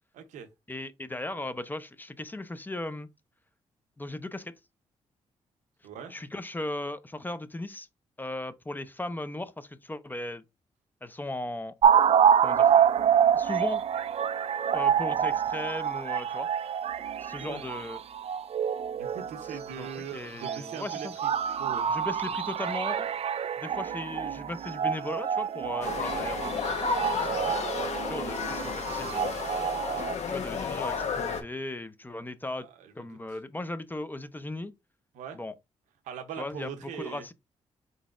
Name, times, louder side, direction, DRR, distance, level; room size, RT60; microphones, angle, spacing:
voice 1, 0.1-0.5 5.8-6.1 17.4-17.6 18.9-21.3 21.6-21.9 32.6-33.2 35.1-35.4 36.0-37.2, right 7 dB, 90° right, 0.7 m, -41 dB
voice 2, 0.7-3.1 4.0-4.5 6.1-7.9 8.2-10.4 11.0-11.8 12.4-12.7 13.3-13.8 14.7-16.5 17.2-18.0 19.8-21.1 21.9-23.1 23.6-29.4 30.3-32.7 32.9-34.7 35.3-35.5 36.4-36.7 37.0-37.3, left 2 dB, 15° left, 0.5 m, -37 dB
sound 1, 11.8-20.0 20.4-30.1, right 8 dB, 55° right, 0.4 m, -27 dB
sound 2, 25.8-31.4, left 5 dB, 65° left, 0.9 m, -32 dB
3.9 x 3.7 x 2.4 m
cardioid pair, 60°, 12 cm